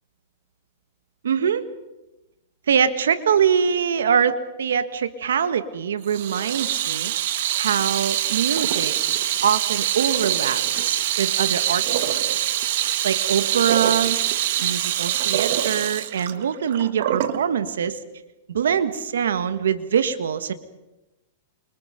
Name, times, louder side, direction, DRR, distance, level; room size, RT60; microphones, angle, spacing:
voice 1, 1.2-1.7 2.7-7.1 7.6-8.9 9.4-12.5 13.0-14.2 14.6-18.0 18.5-20.5, right 7 dB, 90° right, 12 dB, 1.7 m, -23 dB
Water tap faucet / Sink (filling or washing), 6.1-17.4, right 12 dB, 65° right, 1.7 m, -24 dB
28.5 x 25.0 x 5.3 m, 0.98 s
hypercardioid pair, 140°, 0 cm